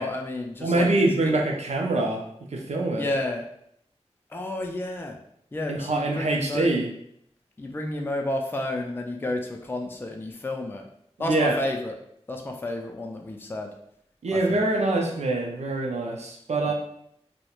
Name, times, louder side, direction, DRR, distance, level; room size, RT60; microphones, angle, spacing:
voice 1, 0.0-1.4 2.9-3.5 4.3-5.2 5.5-6.7 7.6-10.9 11.2-12.0 12.3-13.7 14.3-14.7 16.6-16.7, left 2 dB, 20° left, 2 dB, 0.3 m, -31 dB
voice 2, 0.6-2.2 2.5-3.1 5.7-6.9 11.3-11.5 14.2-16.7, right 2 dB, 75° right, 1 dB, 0.4 m, -24 dB
2.9 x 2.1 x 2.3 m, 0.71 s
wide cardioid pair, 50°, 11 cm